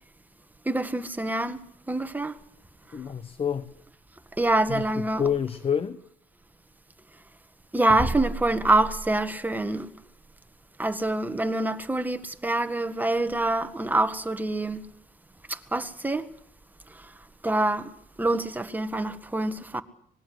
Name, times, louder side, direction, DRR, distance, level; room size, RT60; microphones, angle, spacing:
voice 1, 0.6-2.4 4.4-5.2 7.7-9.9 10.8-14.8 15.5-16.3 17.4-17.9 18.2-19.8, right 2 dB, 10° right, 1.7 m, -26 dB
voice 2, 2.9-3.7 4.7-6.0, left 7 dB, 35° left, 1.2 m, -28 dB
25.5 x 20.0 x 8.0 m
cardioid pair, 110°, 17 cm